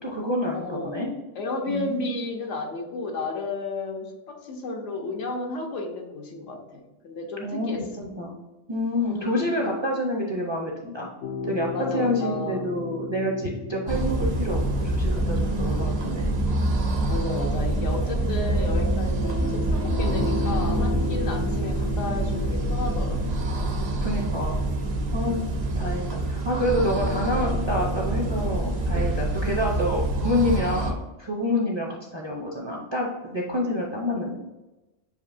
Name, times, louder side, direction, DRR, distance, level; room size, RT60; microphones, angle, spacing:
voice 1, 0.0-1.1 1.7-2.1 7.4-8.3 8.7-11.1 11.4-16.3 24.0-24.6 25.1-25.4 25.8-34.4, left 1 dB, 35° right, -1 dB, 0.5 m, -28 dB
voice 2, 0.5-1.0 1.3-7.9 9.0-9.6 11.7-12.7 17.1-23.2 25.2-25.6 29.4-29.7, left 3 dB, 85° left, 2 dB, 1.2 m, -33 dB
sound 1, 11.2-29.0, left 4 dB, 65° left, 0.7 m, -36 dB
sound 2, 13.9-30.9, right 2 dB, 65° right, 0.9 m, -26 dB
6.9 x 2.8 x 2.5 m, 1.0 s
omnidirectional pair, 1.3 m